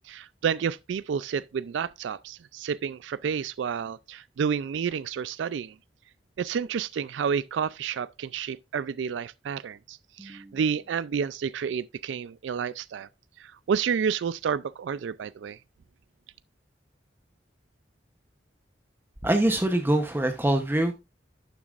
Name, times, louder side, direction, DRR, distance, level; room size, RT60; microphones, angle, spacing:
voice 1, 0.1-5.7 6.4-13.1 13.4-15.6, right 7 dB, 80° right, 0.3 m, -30 dB
voice 2, 10.2-10.6 19.2-20.9, right 1 dB, 10° right, 0.8 m, -24 dB
11.5 x 7.0 x 2.4 m
head